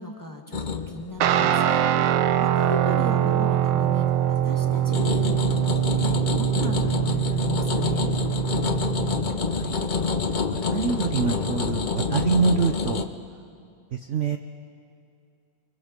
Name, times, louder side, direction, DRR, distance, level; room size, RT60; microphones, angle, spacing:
voice 1, 0.0-8.1, equal, 10° left, 3 dB, 1.4 m, -37 dB
sound 1, 0.5-2.7 3.1-3.6 4.1-13.1, left 4 dB, 50° left, 0.5 m, -28 dB
Guitar, 1.2-9.4, right 11 dB, 75° right, 1.4 m, -23 dB
voice 2, 10.5-13.1 13.9-14.4, right 5 dB, 55° right, 6 dB, 0.9 m, -25 dB
30.0 x 23.0 x 5.3 m, 2.5 s
omnidirectional pair, 2.1 m